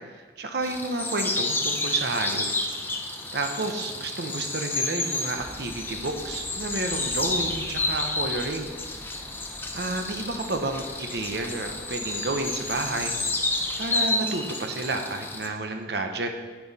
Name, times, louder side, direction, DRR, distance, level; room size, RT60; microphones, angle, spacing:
voice 1, 0.4-2.4 3.3-8.7 9.7-13.1 13.8-16.3, right 2 dB, 65° right, 5 dB, 0.8 m, -30 dB
sound 1, 0.6-15.5, left 2 dB, 10° left, 0.7 m, -30 dB
sound 2, 5.4-14.0, equal, 5° right, 1.2 m, -46 dB
9.2 x 8.8 x 4.2 m, 1.4 s
head